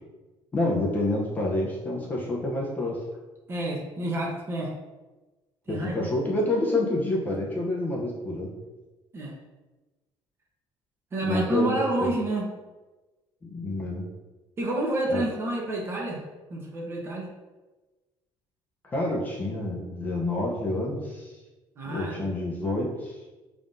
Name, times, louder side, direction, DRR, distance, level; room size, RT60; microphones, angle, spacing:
voice 1, 0.5-3.0 5.7-8.5 11.2-12.1 13.4-14.0 15.1-15.2 18.9-21.3 21.8-23.2, left 2 dB, 20° left, -3 dB, 0.6 m, -28 dB
voice 2, 3.5-4.7 5.7-6.1 9.1-9.4 11.1-12.5 14.6-16.2 16.5-17.3 21.8-22.2, right 1 dB, 25° right, -1 dB, 0.9 m, -29 dB
5.8 x 3.6 x 2.5 m, 1.2 s
cardioid pair, 175°, 9 cm